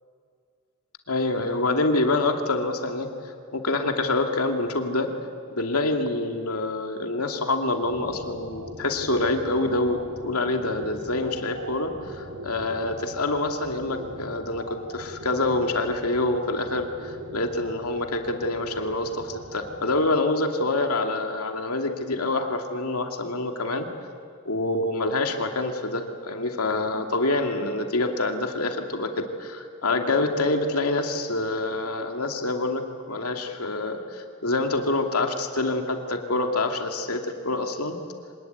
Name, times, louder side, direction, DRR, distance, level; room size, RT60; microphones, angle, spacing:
voice 1, 1.1-3.1 3.5-5.1 5.5-23.9 24.5-38.0, left 2 dB, 85° left, 4 dB, 2.5 m, -26 dB
sound 1, 7.8-20.1, right 1 dB, 85° right, 2.5 m, -41 dB
25.5 x 19.5 x 9.6 m, 2.3 s
head